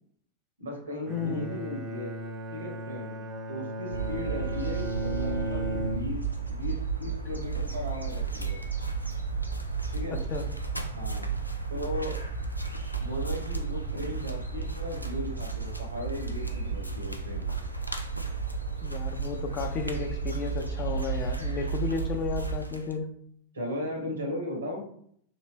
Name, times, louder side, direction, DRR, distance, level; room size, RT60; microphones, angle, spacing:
voice 1, 0.6-2.1 2.5-3.2 3.5-8.6 9.9-10.2 10.9-11.3 11.7-12.2 13.0-17.5 23.5-24.9, left 1 dB, 70° right, 0 dB, 1.1 m, -37 dB
voice 2, 1.1-1.5 10.3-10.5 18.8-23.1, left 5 dB, 35° left, 6 dB, 0.5 m, -33 dB
Bowed string instrument, 1.1-6.5, right 1 dB, 20° right, 0.5 m, -35 dB
sound 1, 3.9-22.6, right 5 dB, 85° right, 0.5 m, -33 dB
sound 2, 7.4-23.0, equal, 90° left, 0.3 m, -46 dB
3.0 x 2.8 x 3.1 m, 0.65 s
figure-of-eight pair, 90°, 0 cm